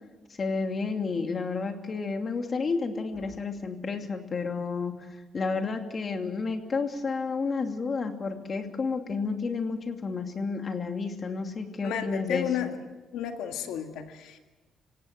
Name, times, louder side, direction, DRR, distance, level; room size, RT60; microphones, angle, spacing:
voice 1, 0.3-4.9 5.3-12.7, left 4 dB, 40° left, 5 dB, 2.7 m, -31 dB
voice 2, 11.8-12.7 13.1-14.4, left 9 dB, 90° left, 6 dB, 2.0 m, -32 dB
27.0 x 17.0 x 7.8 m, 1.2 s
cardioid pair, 90°, 0 cm